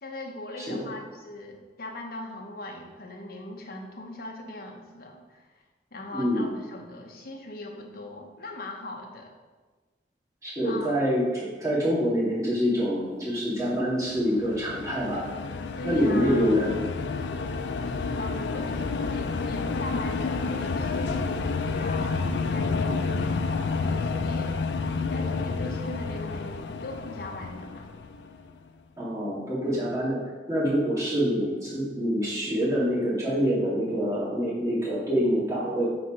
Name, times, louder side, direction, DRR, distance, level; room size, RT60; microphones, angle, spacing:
voice 1, 0.0-5.6 5.9-9.3 10.6-11.1 15.8-16.5 18.1-21.4 21.7-24.6 25.1-27.9, left 1 dB, 55° left, 1 dB, 1.0 m, -40 dB
voice 2, 6.1-6.5 10.4-15.3 15.8-16.8 29.0-30.2 30.5-35.8, equal, 20° right, -8 dB, 2.1 m, -26 dB
sound 1, 14.0-28.5, left 4 dB, 85° left, 0.4 m, -30 dB
6.5 x 4.2 x 5.0 m, 1.3 s
head